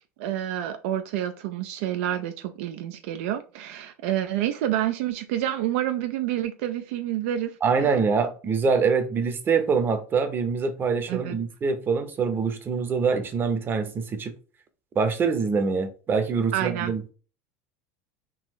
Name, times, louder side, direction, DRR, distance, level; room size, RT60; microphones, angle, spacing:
voice 1, 0.2-7.9 11.1-11.4 16.5-16.9, right 12 dB, 75° right, 0.4 m, -28 dB
voice 2, 7.6-14.3 15.0-17.1, right 5 dB, 30° right, 0.7 m, -24 dB
3.7 x 2.4 x 3.0 m
supercardioid pair, 110°, 7 cm